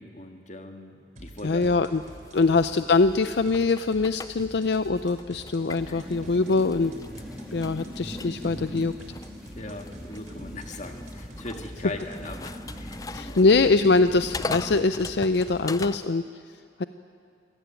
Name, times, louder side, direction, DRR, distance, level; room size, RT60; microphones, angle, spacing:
voice 1, 0.0-1.7 2.3-2.5 5.9-6.0 9.6-13.4, left 2 dB, 40° left, 5 dB, 1.9 m, -40 dB
sound 1, 1.2-15.9, right 1 dB, 45° right, 3.4 m, -47 dB
voice 2, 1.4-2.0 2.3-6.9 7.5-8.9 13.1-16.2 16.8-16.9, left 3 dB, 70° left, 11 dB, 0.5 m, -23 dB
sound 2, 2.0-6.1 6.4-16.1, left 3 dB, 20° left, 0.5 m, -41 dB
sound 3, 5.8-14.8, equal, ahead, 2.1 m, -41 dB
26.0 x 17.5 x 9.2 m, 2.4 s
head